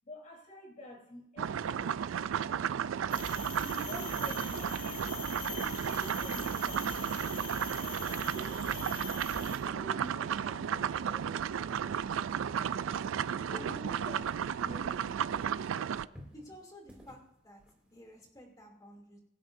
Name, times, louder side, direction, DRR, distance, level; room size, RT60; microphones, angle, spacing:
voice 1, 0.0-2.0 3.6-9.0 9.6-13.1 13.4-14.3 14.6-15.2 15.7-16.2, equal, 40° left, -1 dB, 3.6 m, -49 dB
sound 1, 1.4-16.1, right 8 dB, 70° right, 0.3 m, -34 dB
sound 2, 3.1-9.6, left 5 dB, 70° left, 3.0 m, -43 dB
sound 3, 9.4-15.1 15.3-18.2, equal, 5° right, 2.6 m, -57 dB
voice 2, 13.5-14.0 15.2-15.3 16.3-19.2, equal, 20° left, 0 dB, 2.8 m, -51 dB
22.5 x 9.7 x 2.7 m, 0.77 s
head